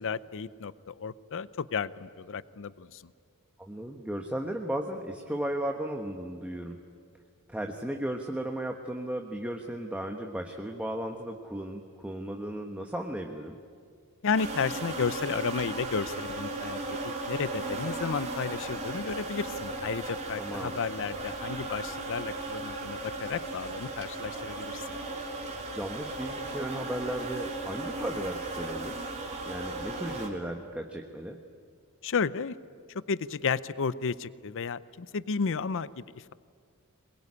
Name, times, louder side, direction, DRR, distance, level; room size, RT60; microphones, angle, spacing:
voice 1, 0.0-3.0 14.2-25.0 32.0-32.6 32.9-36.3, left 5 dB, 60° left, 17 dB, 0.6 m, -33 dB
voice 2, 3.6-6.8 7.5-13.6 20.4-20.8 25.8-29.0 29.4-31.4, right 1 dB, 5° right, 3 dB, 1.2 m, -35 dB
sound 1, 14.3-30.3, right 2 dB, 30° right, 3.2 m, -36 dB
22.0 x 21.5 x 9.9 m, 2.1 s
head